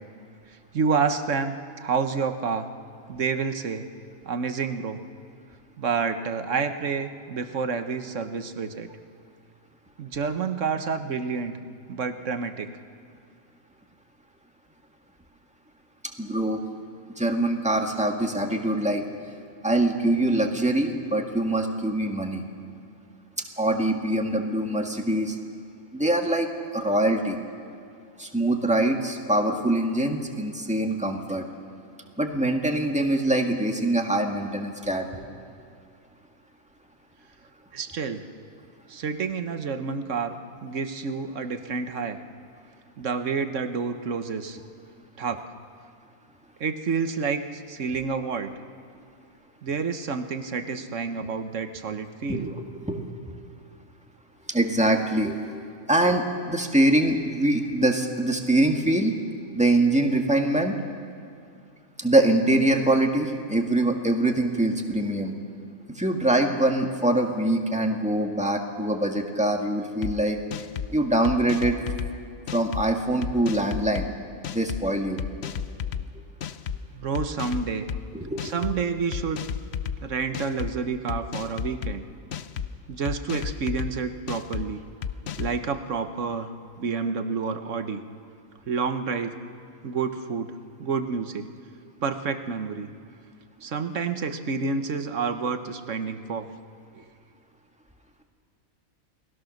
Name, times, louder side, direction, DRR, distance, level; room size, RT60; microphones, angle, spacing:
voice 1, 0.7-2.7 3.1-3.9 4.2-5.0 5.8-8.9 10.0-11.6 11.9-12.7 37.7-38.2 38.9-42.2 43.0-44.6 45.2-45.4 46.6-48.5 49.6-52.5 76.9-77.8 78.4-79.4 80.0-82.1 82.9-84.8 85.4-88.0 88.7-89.4 89.8-91.5 92.0-92.9 93.6-96.5 96.9-97.0, right 5 dB, 60° right, 8 dB, 1.4 m, -29 dB
voice 2, 16.2-16.6 17.2-19.0 19.6-22.4 23.6-25.4 25.9-26.5 26.7-27.4 28.2-31.4 32.2-35.2 52.3-53.1 54.5-59.2 59.5-60.8 62.0-65.3 65.9-70.4 70.9-71.8 72.5-74.1 74.5-75.2 78.1-78.6, right 1 dB, 5° right, 2 dB, 1.7 m, -24 dB
sound 1, 70.0-70.1 70.5-70.9 71.2-72.1 72.5-72.8 73.2-74.1 74.4-74.8 75.2-76.0 76.4-76.8 77.1-78.0 78.4-78.8 79.1-80.0 80.3-80.7 81.1-81.9 82.3-82.7 83.0-83.9 84.3-84.6 85.0-85.6, left 8 dB, 55° left, 0.9 m, -32 dB
29.0 x 19.5 x 6.5 m, 2.4 s
omnidirectional pair, 1.5 m